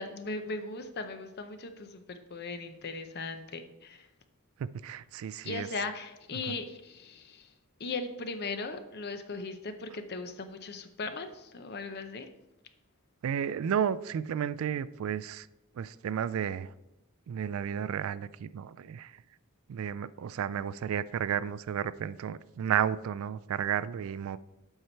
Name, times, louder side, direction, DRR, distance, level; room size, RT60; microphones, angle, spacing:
voice 1, 0.0-4.1 5.4-7.5 7.8-12.3, left 3 dB, 50° left, 8 dB, 0.7 m, -38 dB
voice 2, 4.6-5.7 6.5-6.6 13.2-15.5 15.7-16.7 17.3-19.2 19.7-24.4, right 8 dB, 65° right, 16 dB, 0.3 m, -32 dB
8.0 x 5.7 x 4.5 m, 0.94 s
head